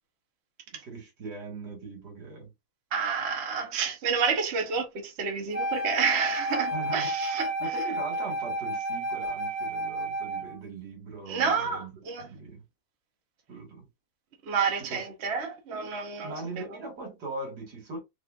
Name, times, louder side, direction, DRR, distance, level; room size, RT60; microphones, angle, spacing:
voice 1, 0.7-2.5 6.7-12.6 13.5-13.9 14.9-15.1 16.2-18.0, right 2 dB, 85° right, 2.2 m, -40 dB
voice 2, 2.9-7.7 11.3-12.3 14.5-16.7, right 6 dB, 45° right, 1.1 m, -29 dB
Wind instrument woodwind instrument, 5.5-10.6, right 1 dB, 65° right, 2.0 m, -31 dB
4.4 x 2.4 x 2.4 m
omnidirectional pair, 1.7 m